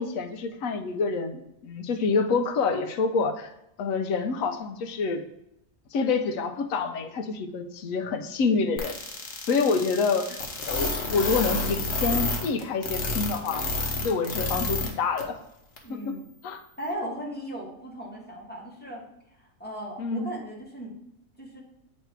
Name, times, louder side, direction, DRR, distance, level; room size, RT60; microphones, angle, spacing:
voice 1, 0.0-3.5 3.8-5.2 5.9-9.0 9.4-13.7 14.0-15.4 15.9-16.1 16.4-16.6 20.0-20.3, left 4 dB, 75° left, 8 dB, 1.1 m, -27 dB
sound 1, 8.8-14.9 15.2-15.3 15.8-15.9, left 3 dB, 60° left, 1.3 m, -29 dB
voice 2, 15.8-16.3 16.8-19.1 19.4-21.0 21.4-21.6, equal, 5° left, -4 dB, 1.6 m, -37 dB
8.1 x 3.3 x 4.4 m, 0.81 s
omnidirectional pair, 1.4 m